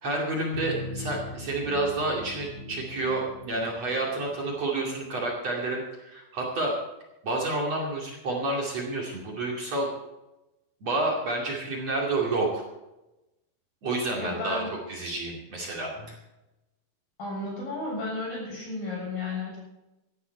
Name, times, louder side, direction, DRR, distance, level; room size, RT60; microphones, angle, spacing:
voice 1, 0.0-6.7 7.2-9.9 10.8-12.6 13.8-14.6 14.9-16.2, right 2 dB, 45° right, -2 dB, 3.3 m, -29 dB
sound 1, 0.5-5.0, left 2 dB, 20° left, 3.0 m, -40 dB
voice 2, 14.2-14.7 16.0-16.1 17.2-19.6, left 2 dB, 60° left, -3 dB, 8.9 m, -33 dB
17.5 x 12.0 x 4.6 m, 0.97 s
omnidirectional pair, 4.6 m